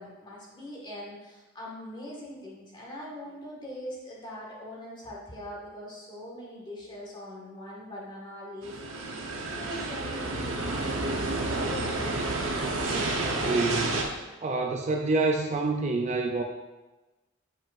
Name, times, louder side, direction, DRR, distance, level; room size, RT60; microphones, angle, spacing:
voice 1, 0.0-11.5, left 1 dB, 25° left, -5 dB, 1.7 m, -42 dB
sound 1, 8.6-14.0, right 2 dB, 70° right, 0.9 m, -30 dB
voice 2, 12.9-13.9 14.4-16.4, right 3 dB, 35° right, 2 dB, 0.4 m, -27 dB
7.2 x 5.5 x 2.5 m, 1.1 s
head